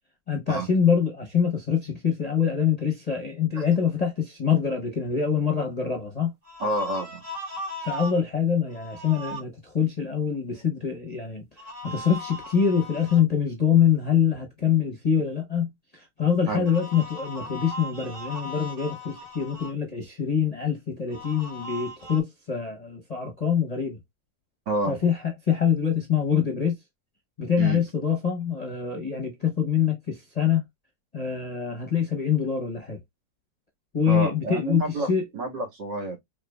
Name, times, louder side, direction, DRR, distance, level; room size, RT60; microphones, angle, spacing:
voice 1, 0.3-6.3 7.8-11.5 11.8-24.0 24.9-26.7 27.4-30.6 31.1-33.0 33.9-35.2, left 7 dB, 30° left, 0.8 m, -25 dB
sound 1, 6.4-8.2 8.7-9.4 11.6-13.2 16.6-19.7 21.1-22.2, left 1 dB, 30° right, 1.8 m, -38 dB
voice 2, 6.6-7.2 16.5-16.7 24.7-25.0 27.6-27.8 34.1-35.1 35.3-36.2, right 2 dB, 75° right, 2.4 m, -28 dB
4.9 x 3.3 x 2.2 m
omnidirectional pair, 1.9 m